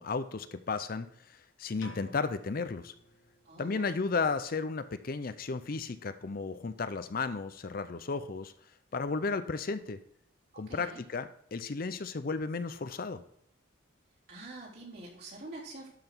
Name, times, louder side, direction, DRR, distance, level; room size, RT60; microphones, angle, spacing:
voice 1, 0.0-2.9 3.6-8.5 8.9-10.0 10.6-13.2, left 4 dB, 45° left, 12 dB, 0.5 m, -34 dB
sound 1, 1.8-3.7, left 2 dB, 70° left, 1.0 m, -50 dB
voice 2, 3.5-4.0 10.5-11.0 14.3-15.9, right 2 dB, 50° right, -5 dB, 3.5 m, -46 dB
12.0 x 5.8 x 4.5 m, 0.69 s
head